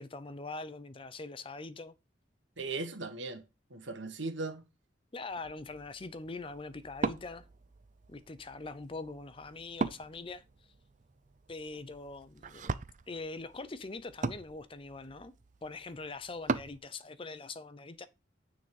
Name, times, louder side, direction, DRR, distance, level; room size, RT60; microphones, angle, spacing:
voice 1, 0.0-1.9 5.1-7.4 8.1-10.4 11.5-12.7 13.1-15.3 15.6-18.1, left 3 dB, 30° left, 0.6 m, -43 dB
voice 2, 2.6-3.4 3.7-4.6, right 3 dB, 80° right, 1.4 m, -38 dB
Wood, 5.3-16.8, right 3 dB, 40° right, 0.5 m, -40 dB
9.4 x 3.9 x 5.3 m
head